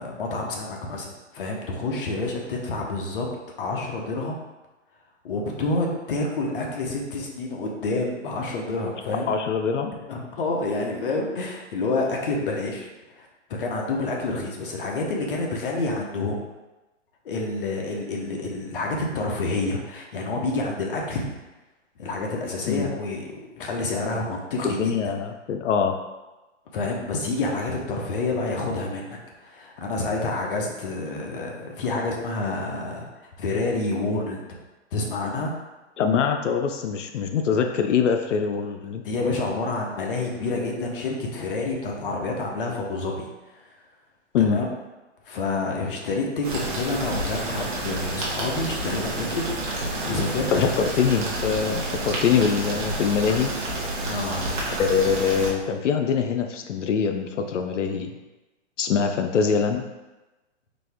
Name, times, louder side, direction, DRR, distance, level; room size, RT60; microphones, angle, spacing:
voice 1, 0.0-3.3 3.6-4.4 5.2-9.3 10.1-12.9 13.2-16.4 17.2-21.3 22.0-24.9 26.7-33.1 33.4-34.4 34.9-35.5 39.0-43.3 44.4-44.7 45.3-50.7 54.1-54.5, left 2 dB, 45° left, 0 dB, 0.9 m, -28 dB
voice 2, 9.3-9.9 22.7-22.9 24.6-25.9 36.0-39.0 44.3-44.6 50.5-53.5 54.8-58.1 58.8-59.8, left 6 dB, 75° left, 5 dB, 0.6 m, -23 dB
sound 1, 46.4-55.5, right 1 dB, 40° right, 1.1 m, -29 dB
4.1 x 2.8 x 3.4 m, 1.1 s
hypercardioid pair, 155°, 37 cm